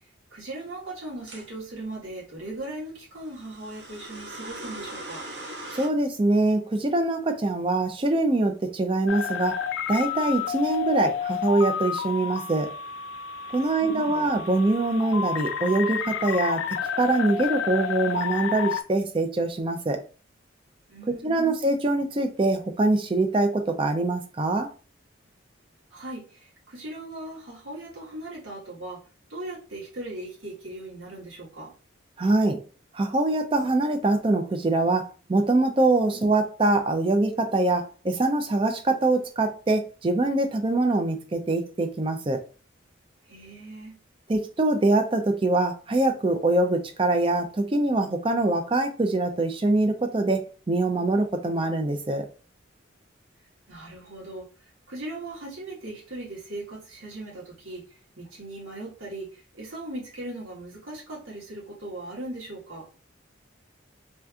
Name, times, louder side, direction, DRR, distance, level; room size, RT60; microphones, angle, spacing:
voice 1, 0.3-5.2 13.8-14.3 20.9-21.5 25.9-29.0 29.3-31.7 36.1-36.3 43.2-44.0 53.7-54.5 54.9-62.9, right 1 dB, 85° right, 1.5 m, -39 dB
sound 1, 1.3-1.5 3.3-5.9, right 1 dB, 55° right, 0.9 m, -39 dB
voice 2, 5.7-9.6 9.9-12.7 13.5-16.6 17.0-20.0 21.2-24.7 32.2-32.6 32.9-42.4 44.3-52.3, right 2 dB, 25° right, 0.4 m, -24 dB
sound 2, 9.1-18.8, left 7 dB, 80° left, 0.4 m, -30 dB
3.3 x 2.7 x 2.3 m
head